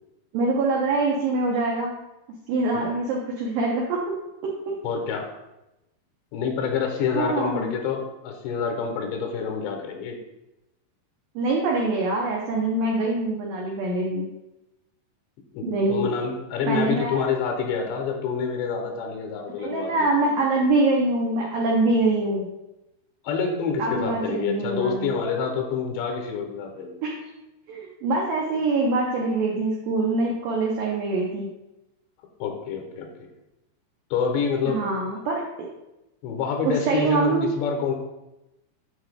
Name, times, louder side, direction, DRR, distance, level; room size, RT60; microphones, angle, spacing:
voice 1, 0.3-2.0 2.5-4.1 4.7-4.8 7.1-7.7 11.4-14.3 15.6-16.1 16.7-17.2 19.6-22.5 23.8-25.1 27.0-27.3 27.7-31.5 34.7-35.7 36.7-37.5, right 2 dB, 85° right, -2 dB, 2.0 m, -24 dB
voice 2, 4.8-5.3 6.3-10.2 15.5-20.1 23.2-27.0 32.4-33.3 34.1-35.1 36.2-37.9, left 6 dB, 85° left, 3 dB, 3.0 m, -27 dB
8.1 x 7.3 x 2.2 m, 0.95 s
omnidirectional pair, 5.2 m